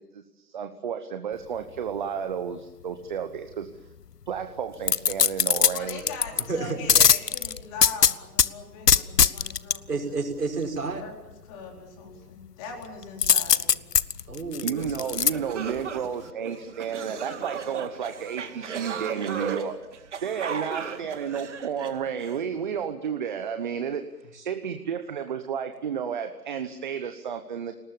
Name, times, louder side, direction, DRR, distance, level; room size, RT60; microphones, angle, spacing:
voice 1, 0.0-3.7 4.3-6.0 14.6-19.8 20.2-24.0 24.4-27.7, right 7 dB, 30° right, 9 dB, 1.1 m, -32 dB
sound 1, 4.9-6.4 6.9-8.5 8.9-9.8 13.2-15.3 15.8-15.9, left 7 dB, 75° left, 0.9 m, -20 dB
voice 2, 5.7-10.1 11.0-13.9, left 4 dB, 20° left, 1 dB, 4.4 m, -41 dB
voice 3, 6.4-7.0 9.9-11.0 14.3-15.2 24.3-24.5, right 3 dB, 70° right, 3 dB, 5.4 m, -31 dB
sound 2, 14.9-15.0 15.3-22.4, right 6 dB, 45° right, 2.3 m, -35 dB
29.0 x 19.0 x 7.2 m, 1.0 s
figure-of-eight pair, 145°, 48 cm